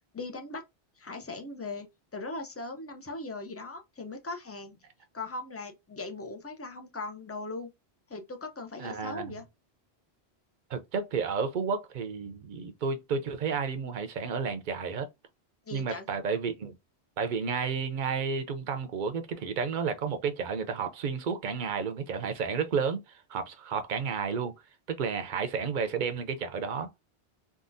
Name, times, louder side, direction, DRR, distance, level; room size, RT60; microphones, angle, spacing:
voice 1, 0.1-0.6 1.0-1.9 2.1-4.8 5.1-7.7 8.1-9.4 15.7-16.1, left 3 dB, 25° left, 0.3 m, -39 dB
voice 2, 8.8-9.3 10.7-15.1 15.7-16.7 17.2-24.5 24.9-26.9, right 5 dB, 55° right, 0.7 m, -31 dB
3.7 x 2.3 x 2.5 m
omnidirectional pair, 1.1 m